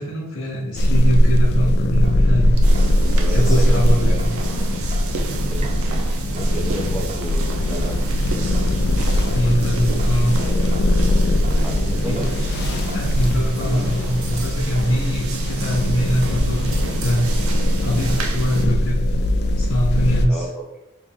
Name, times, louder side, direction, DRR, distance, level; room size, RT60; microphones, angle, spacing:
voice 1, 0.0-2.5 3.3-4.3 9.3-10.3 12.1-12.2 12.9-17.4 17.8-19.1 19.5-20.4, equal, 80° left, -8 dB, 0.8 m, -22 dB
sound 1, 0.8-20.3, left 1 dB, 50° left, 0.3 m, -20 dB
Sink (filling or washing) / Drip, 2.0-14.4, right 1 dB, 30° right, 0.3 m, -39 dB
sound 2, 2.6-18.7, right 3 dB, 80° right, 0.5 m, -31 dB
voice 2, 3.1-3.8 5.2-6.0 6.3-8.0 10.4-10.7 11.6-12.3 20.3-20.6, right 1 dB, ahead, -3 dB, 0.7 m, -31 dB
3.1 x 2.9 x 3.6 m, 0.89 s
head